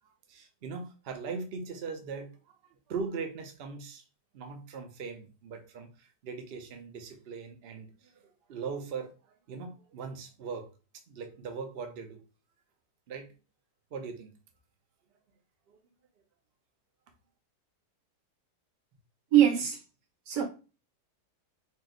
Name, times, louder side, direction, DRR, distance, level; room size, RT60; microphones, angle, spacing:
voice 1, 0.3-2.6 2.9-4.0 4.3-10.7 11.1-12.2 13.1-13.3 13.9-14.3 15.7-15.8, right 5 dB, 60° right, 0.6 m, -40 dB
voice 2, 19.3-19.8 20.3-20.4, right 11 dB, 85° right, 1.7 m, -22 dB
4.3 x 2.1 x 3.7 m
omnidirectional pair, 1.8 m